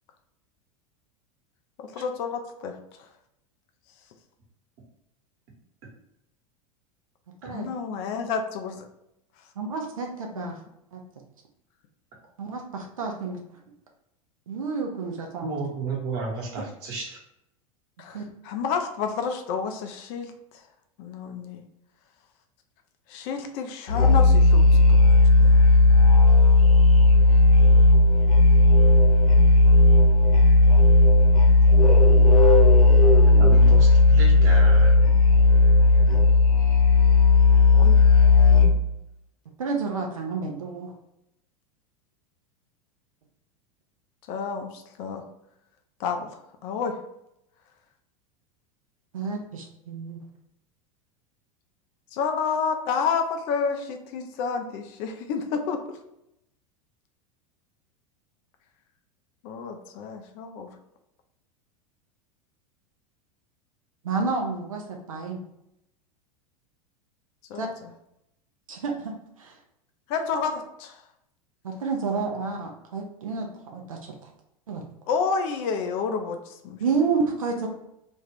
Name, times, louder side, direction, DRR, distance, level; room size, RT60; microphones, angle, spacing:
voice 1, 1.8-2.8 7.5-8.8 10.4-10.6 18.0-20.6 21.0-21.6 23.1-24.7 25.0-25.1 25.4-25.6 37.7-38.0 44.3-45.2 46.0-47.0 52.1-56.0 59.4-60.7 67.5-67.9 70.1-71.0 75.1-76.8, left 5 dB, 40° left, 5 dB, 0.4 m, -30 dB
voice 2, 9.6-10.6 10.9-11.0 12.4-13.4 14.5-15.6 18.1-18.3 39.6-40.9 49.1-50.2 64.0-65.4 67.6-67.7 68.7-69.1 69.4-69.5 71.6-74.1 74.7-74.8 76.8-77.7, right 4 dB, 70° right, 1 dB, 0.5 m, -30 dB
voice 3, 15.4-17.2 33.4-34.9, right 3 dB, 45° right, -2 dB, 1.2 m, -32 dB
Musical instrument, 23.9-38.9, left 2 dB, 75° left, 0.7 m, -15 dB
2.5 x 2.4 x 3.3 m, 0.82 s
figure-of-eight pair, 85°, 18 cm